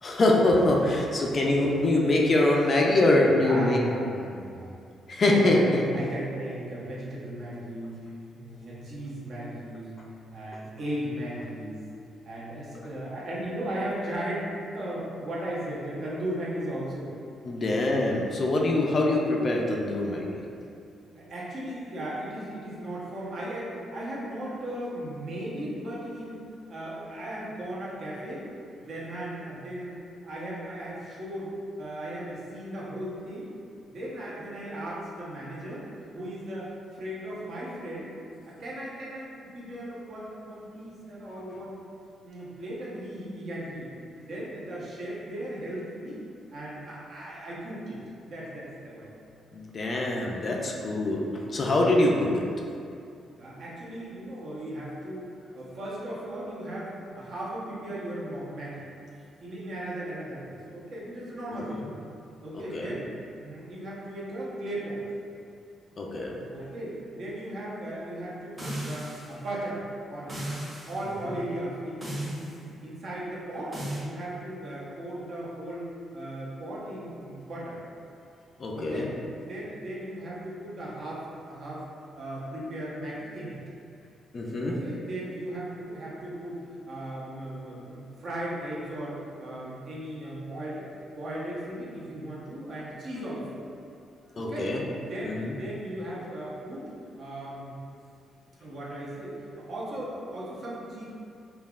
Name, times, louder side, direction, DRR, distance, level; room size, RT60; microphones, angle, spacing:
voice 1, 0.0-3.8 5.1-5.8 17.5-20.4 49.5-51.3 51.5-52.4 61.7-61.8 62.5-62.9 66.0-66.4 78.6-79.1 84.3-84.8 94.4-94.8 95.2-95.5, left 2 dB, 35° left, -1 dB, 0.4 m, -24 dB
voice 2, 3.2-4.7 5.3-10.0 10.3-11.8 12.2-17.1 21.1-26.4 26.7-28.5 28.8-31.5 31.8-33.5 33.9-35.9 36.1-38.1 38.5-41.8 42.2-43.9 44.3-46.2 46.5-48.0 48.3-49.1 53.4-55.3 55.5-58.9 59.4-61.8 62.4-63.1 63.4-65.0 66.5-69.8 70.1-70.4 70.9-72.5 72.8-73.8 74.0-77.8 78.7-79.2 79.5-81.9 82.2-83.6 84.6-90.9 91.2-93.6 94.3-94.8 95.1-96.9 97.2-97.8 98.6-101.1, right 1 dB, 50° right, -6 dB, 0.8 m, -37 dB
sound 1, 68.6-69.4 70.3-71.0 72.0-72.6 73.7-74.0, right 1 dB, 25° right, 1.4 m, -35 dB
5.4 x 2.3 x 2.3 m, 2.5 s
cardioid pair, 150°, 0 cm